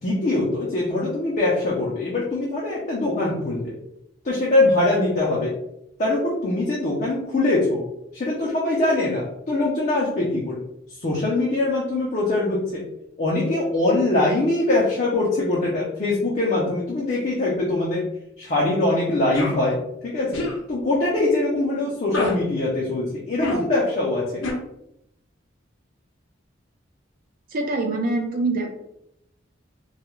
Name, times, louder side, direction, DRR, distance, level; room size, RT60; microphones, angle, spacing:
voice 1, 0.0-3.7 4.2-5.5 6.0-7.8 8.1-10.6 11.0-12.8 13.2-18.1 18.4-19.8 20.0-24.4, left 2 dB, 40° left, -5 dB, 0.5 m, -22 dB
sound 1, 19.3-19.5 20.3-20.6 22.1-22.3 23.4-23.6 24.4-24.5, left 2 dB, 80° left, 0.6 m, -26 dB
voice 2, 27.5-28.7, right 2 dB, 45° right, 2 dB, 0.4 m, -24 dB
2.3 x 2.1 x 3.0 m, 0.79 s
head